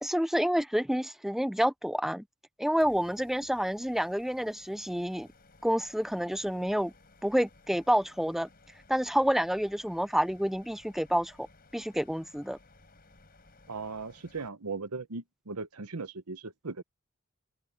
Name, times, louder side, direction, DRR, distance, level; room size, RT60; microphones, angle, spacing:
voice 1, 0.0-2.2 2.6-5.3 5.6-6.9 7.2-8.5 8.9-11.5 11.7-12.6, equal, ahead, 0.5 m, -28 dB
sound 1, 2.8-14.5, left 2 dB, 45° left, 5.4 m, -59 dB
voice 2, 13.7-16.8, right 4 dB, 90° right, 1.1 m, -38 dB
open air
head